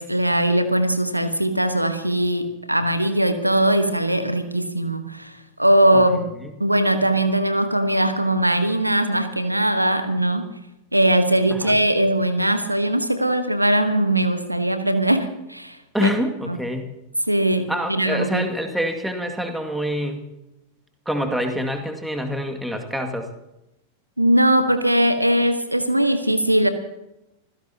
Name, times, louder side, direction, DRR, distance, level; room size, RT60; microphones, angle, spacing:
voice 1, 0.0-6.3 6.6-10.4 10.9-16.1 16.5-16.6 17.3-18.5 24.2-26.7, right 1 dB, 85° right, 10 dB, 1.3 m, -20 dB
voice 2, 15.9-16.9 17.7-20.3 21.1-23.3, equal, 5° right, 5 dB, 2.2 m, -26 dB
25.5 x 16.0 x 2.9 m, 0.90 s
figure-of-eight pair, 90°, 0 cm